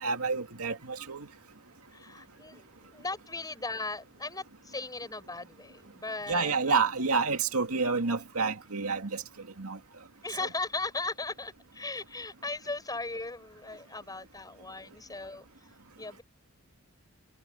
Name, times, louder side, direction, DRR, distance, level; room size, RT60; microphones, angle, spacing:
voice 1, 0.0-1.3 6.3-9.2 9.6-9.8 10.4-10.5, right 4 dB, 80° right, 2.3 m, -29 dB
voice 2, 1.9-6.8 10.2-16.2, left 3 dB, 20° left, 6.9 m, -38 dB
head